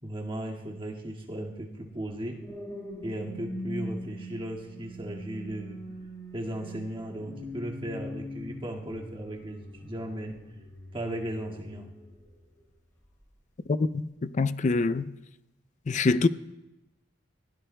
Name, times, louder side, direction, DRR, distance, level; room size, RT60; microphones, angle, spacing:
voice 1, 0.0-2.4 3.0-5.8 6.3-10.4 10.9-11.9, right 1 dB, 30° right, 2.0 m, -36 dB
sound 1, 1.9-12.5 13.0-13.3, equal, 15° left, 6.6 m, -42 dB
voice 2, 13.7-15.1 15.9-16.3, left 3 dB, 40° left, 0.4 m, -25 dB
22.5 x 16.5 x 2.2 m
head